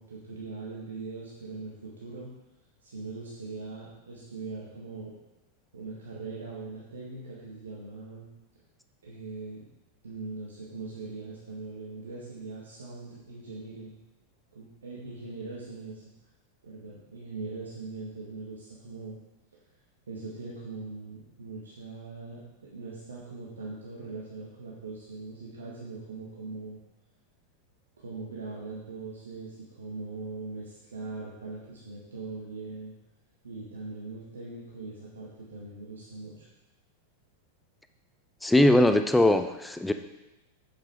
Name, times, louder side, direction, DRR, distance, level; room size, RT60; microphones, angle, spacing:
voice 1, 0.0-2.3 2.8-5.1 5.7-8.3 9.0-9.7 10.0-14.0 14.5-16.0 16.6-19.2 19.5-19.6 20.1-26.8 28.0-32.9 33.4-36.5, right 3 dB, 70° right, -5 dB, 1.6 m, -41 dB
voice 2, 38.4-39.9, left 1 dB, 5° left, 9 dB, 0.5 m, -21 dB
8.1 x 8.1 x 3.5 m, 0.96 s
figure-of-eight pair, 90°, 0 cm